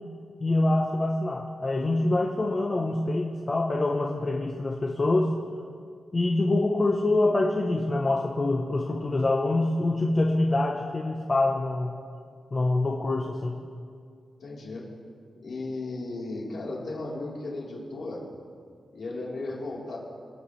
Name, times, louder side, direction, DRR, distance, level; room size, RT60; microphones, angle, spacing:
voice 1, 0.4-5.3 6.1-11.9 12.5-13.5, left 2 dB, 25° left, -1 dB, 0.8 m, -25 dB
voice 2, 14.4-14.9 15.4-18.2 18.9-20.0, left 2 dB, 60° left, -5 dB, 3.6 m, -35 dB
26.0 x 8.8 x 3.2 m, 2.1 s
wide cardioid pair, 175°, 0 cm